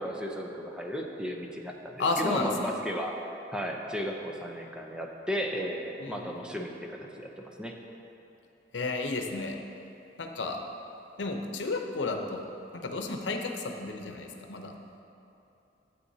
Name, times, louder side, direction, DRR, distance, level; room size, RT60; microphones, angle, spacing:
voice 1, 0.0-3.1 3.5-7.7, equal, 5° right, 1 dB, 0.6 m, -35 dB
voice 2, 2.0-2.7 6.0-6.5 8.7-9.6 10.2-10.6 11.2-12.5 12.7-14.7, left 3 dB, 90° left, 3 dB, 0.8 m, -32 dB
12.5 x 8.0 x 2.8 m, 2.9 s
head